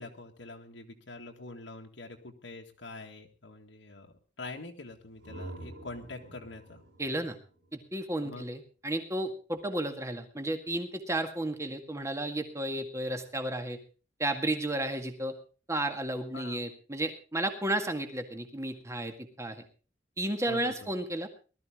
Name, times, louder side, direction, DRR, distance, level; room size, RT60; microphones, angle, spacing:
voice 1, 0.0-4.1 4.4-6.8 8.2-8.5 16.3-16.6 20.5-20.9, left 2 dB, 80° left, 1 dB, 1.9 m, -44 dB
sound 1, 4.9-8.6, right 1 dB, 80° right, 4.6 m, -48 dB
voice 2, 7.0-7.4 7.7-13.8 14.2-15.4 15.7-19.6 20.2-21.3, right 1 dB, 15° right, 6 dB, 1.9 m, -33 dB
19.0 x 13.5 x 3.7 m, 0.35 s
head